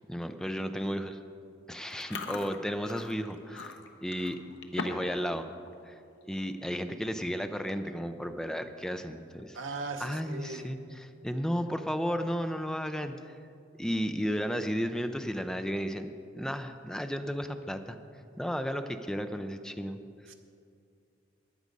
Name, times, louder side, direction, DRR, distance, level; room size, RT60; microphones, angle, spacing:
voice 1, 0.1-1.2 1.7-4.4 4.7-5.5 5.9-6.0 6.3-9.6 10.0-13.4 13.8-16.1 16.3-18.0 18.4-20.0, equal, 5° left, 8 dB, 0.5 m, -33 dB
Chewing mastication, 1.9-5.2 5.5-5.8 6.2-6.4 7.2-7.3 7.5-7.9 8.3-8.4 9.8-10.4, left 4 dB, 65° left, 1.0 m, -41 dB
voice 2, 9.5-10.7 20.3-20.4, right 3 dB, 85° right, 4 dB, 1.2 m, -38 dB
14.5 x 9.7 x 5.3 m, 2.4 s
head